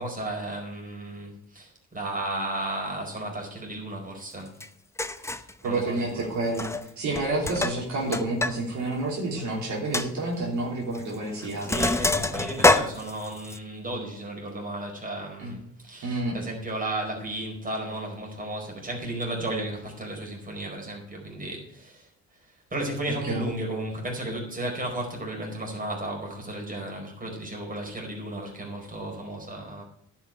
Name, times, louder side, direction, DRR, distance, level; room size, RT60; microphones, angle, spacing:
voice 1, 0.0-4.5 5.6-6.3 11.6-22.0 22.7-29.8, right 1 dB, 30° right, 0 dB, 4.6 m, -34 dB
Sink (filling or washing), 4.6-4.7 5.0-5.5 6.5-6.9 7.1-8.6 8.9-9.0 9.4-9.5 9.9-10.1 10.9-11.1 11.4-13.6, left 2 dB, 10° left, 0.7 m, -25 dB
voice 2, 5.6-6.7 7.0-11.7 15.4-15.6 16.0-16.3 23.2-23.5, right 2 dB, 70° right, -2 dB, 3.2 m, -29 dB
11.0 x 6.0 x 8.7 m, 0.71 s
cardioid pair, 90°, 30 cm